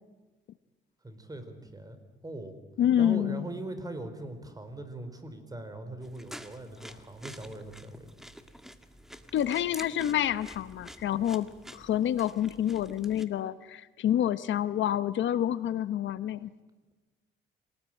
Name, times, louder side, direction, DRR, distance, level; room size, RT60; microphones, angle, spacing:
voice 1, 1.0-2.6 3.0-8.2, right 2 dB, 20° right, 8 dB, 4.4 m, -41 dB
voice 2, 2.8-3.4 9.3-16.5, left 11 dB, 70° left, 15 dB, 0.9 m, -28 dB
sound 1, 6.0-13.2, equal, ahead, 1.9 m, -48 dB
26.5 x 19.0 x 9.0 m, 1.2 s
cardioid pair, 90°, 20 cm